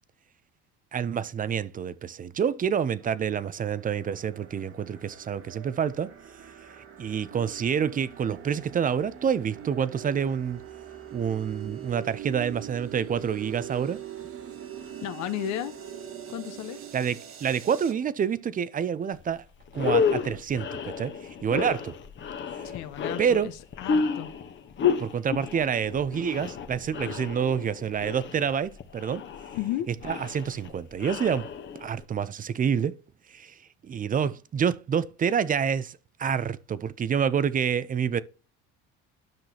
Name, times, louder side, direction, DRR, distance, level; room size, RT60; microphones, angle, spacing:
voice 1, 0.9-6.1 7.0-10.6 11.1-14.0 16.9-19.4 19.7-21.9 23.2-23.5 25.0-29.2 29.9-31.5 31.8-33.0 33.3-33.5 33.8-38.2, right 7 dB, 30° right, 0.5 m, -28 dB
sound 1, 3.0-17.9, right 10 dB, 45° right, 1.3 m, -43 dB
voice 2, 15.0-15.7 16.3-16.8 22.6-23.5 23.8-24.3 29.5-29.9, left 13 dB, 75° left, 1.0 m, -33 dB
sound 2, 19.2-19.3 19.7-32.0, left 6 dB, 40° left, 1.1 m, -31 dB
10.5 x 6.0 x 2.8 m
cardioid pair, 110°, 29 cm